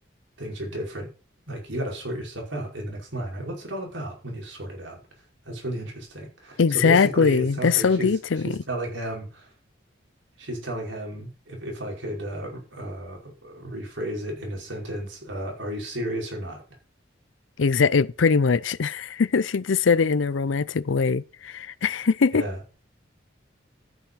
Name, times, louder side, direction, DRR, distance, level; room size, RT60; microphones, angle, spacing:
voice 1, 0.4-1.1 1.5-5.0 5.5-8.1 8.4-9.5 10.4-16.6 22.3-22.6, right 1 dB, 75° right, 5.5 m, -33 dB
voice 2, 6.6-8.6 17.6-22.4, left 5 dB, 85° left, 0.5 m, -21 dB
14.0 x 7.2 x 5.7 m
head